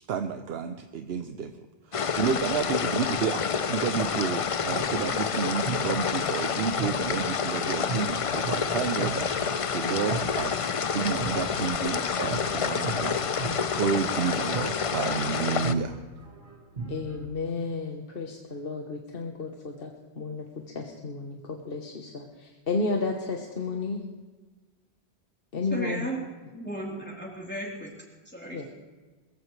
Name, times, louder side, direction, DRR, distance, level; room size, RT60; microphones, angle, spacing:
voice 1, 0.1-1.6 1.9-16.0, right 6 dB, 70° right, 7 dB, 0.9 m, -31 dB
sound 1, 1.9-15.7, left 6 dB, 45° left, 0.5 m, -28 dB
sound 2, 4.7-17.3, right 3 dB, 50° right, 2.0 m, -39 dB
voice 2, 16.9-19.9 20.2-20.5 20.7-24.0 25.5-26.1 28.5-28.7, left 3 dB, 60° left, 2 dB, 1.3 m, -32 dB
voice 3, 25.7-26.2 26.5-27.9 28.3-28.6, right 1 dB, 10° left, -4 dB, 3.6 m, -34 dB
21.5 x 15.0 x 3.3 m, 1.3 s
omnidirectional pair, 1.1 m